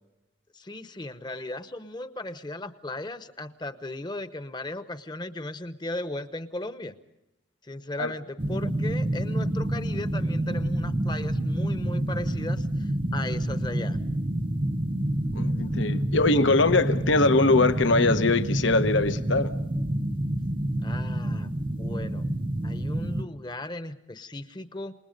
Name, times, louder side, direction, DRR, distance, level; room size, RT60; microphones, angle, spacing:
voice 1, 0.5-6.9 7.6-14.0 20.8-21.5 21.8-22.3 22.6-24.9, left 2 dB, 20° left, 11 dB, 0.9 m, -36 dB
sound 1, 8.4-23.2, right 1 dB, 25° right, 0.8 m, -28 dB
voice 2, 15.3-19.5, left 2 dB, 80° left, 10 dB, 1.1 m, -22 dB
28.0 x 20.5 x 5.3 m, 0.94 s
head